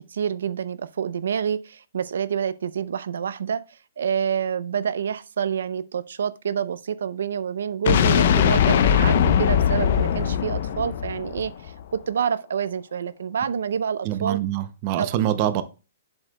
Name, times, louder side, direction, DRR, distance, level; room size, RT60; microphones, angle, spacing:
voice 1, 0.0-14.4 15.0-15.1, right 7 dB, 75° right, 0.5 m, -28 dB
sound 1, 7.8-11.8, left 8 dB, 45° left, 0.6 m, -20 dB
voice 2, 14.0-15.6, right 12 dB, 25° right, 0.5 m, -24 dB
7.9 x 7.3 x 2.2 m
hypercardioid pair, 175°, 0 cm